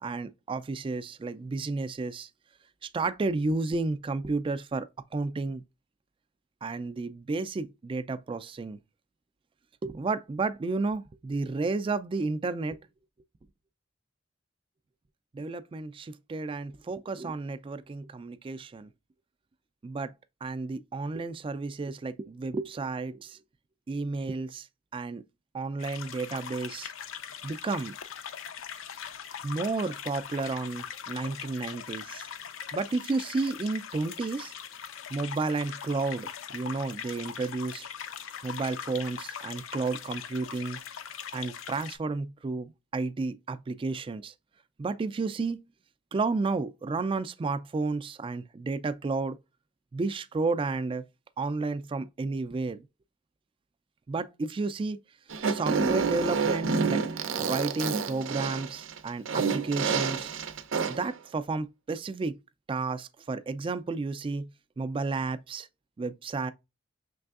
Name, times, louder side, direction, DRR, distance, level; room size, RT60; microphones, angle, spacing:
voice 1, 0.0-2.3 2.8-4.9 5.1-5.6 6.6-8.8 9.8-12.8 15.3-18.9 19.8-20.1 20.4-23.4 23.9-24.7 24.9-25.2 25.5-26.9 27.4-27.9 29.4-32.3 32.7-34.5 35.1-37.9 38.4-40.8 41.3-44.3 44.8-45.6 46.1-49.4 49.9-51.0 51.4-52.8 54.1-55.0 55.5-57.0 57.4-60.3 60.9-62.4 62.7-64.5 64.8-65.7 66.0-66.5, right 3 dB, 25° right, 0.3 m, -32 dB
sound 1, 25.8-42.0, left 8 dB, 80° left, 0.4 m, -41 dB
Fart, 55.3-61.1, right 5 dB, 75° right, 0.5 m, -28 dB
5.3 x 3.3 x 2.4 m
head